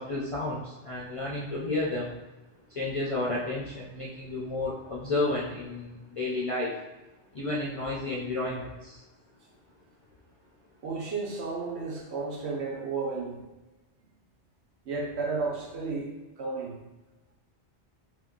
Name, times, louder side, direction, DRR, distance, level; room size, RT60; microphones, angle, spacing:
voice 1, 0.0-2.1 2.7-6.8 7.3-9.0, left 2 dB, 45° left, -5 dB, 0.4 m, -31 dB
voice 2, 10.8-13.4 14.8-16.8, right 4 dB, 75° right, -1 dB, 1.0 m, -33 dB
3.0 x 2.7 x 3.6 m, 1.1 s
omnidirectional pair, 1.2 m